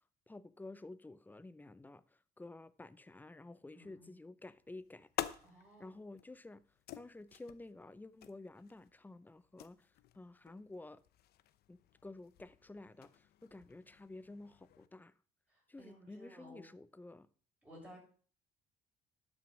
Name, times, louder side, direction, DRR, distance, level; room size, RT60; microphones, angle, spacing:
voice 1, 0.3-2.0 2.4-5.1 5.8-6.6 6.9-9.9 10.2-11.0 11.7-15.1 15.7-17.3, left 2 dB, 10° left, 0.6 m, -52 dB
voice 2, 3.7-4.1 5.4-5.9 15.5-16.6 17.6-18.0, equal, 5° right, 7.2 m, -56 dB
sound 1, 4.5-14.9, left 12 dB, 70° left, 0.8 m, -50 dB
11.5 x 6.3 x 6.1 m
cardioid pair, 110°, 17 cm